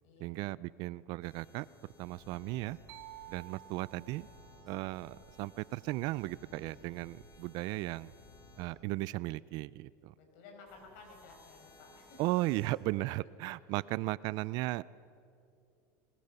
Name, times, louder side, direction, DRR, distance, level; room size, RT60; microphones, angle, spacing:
voice 1, 0.2-1.7 2.0-2.8 3.3-4.3 4.6-8.1 8.6-10.1 12.2-14.8, right 19 dB, 55° right, 21 dB, 0.4 m, -36 dB
sound 1, 1.2-8.7 10.7-12.8, left 3 dB, 40° left, 5.1 m, -59 dB
sound 2, 2.9-6.6, right 19 dB, 85° right, 1.2 m, -55 dB
voice 2, 10.1-12.3 13.7-13.8, left 3 dB, 70° left, 1 dB, 6.7 m, -55 dB
21.5 x 21.0 x 6.8 m, 2.6 s
supercardioid pair, 130°, 8 cm